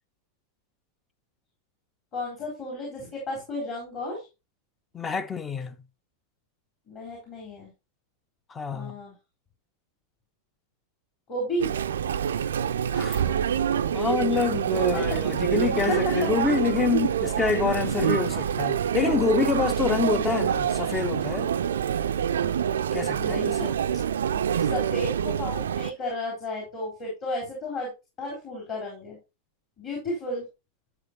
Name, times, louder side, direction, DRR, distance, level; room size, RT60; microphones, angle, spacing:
voice 1, 2.1-4.3 6.9-7.7 8.7-9.1 11.3-11.8 14.9-15.2 15.9-16.0 18.0-18.5 23.1-23.7 24.4-27.9 28.2-29.2 29.8-30.4, left 1 dB, 40° left, 3.7 m, -33 dB
voice 2, 4.9-5.8 8.5-9.0 12.9-13.4 13.9-21.5 22.9-23.7, left 5 dB, 20° left, 0.6 m, -27 dB
Chatter, 11.6-25.9, right 8 dB, 65° right, 0.4 m, -26 dB
11.5 x 6.1 x 2.8 m
figure-of-eight pair, 90°, 0 cm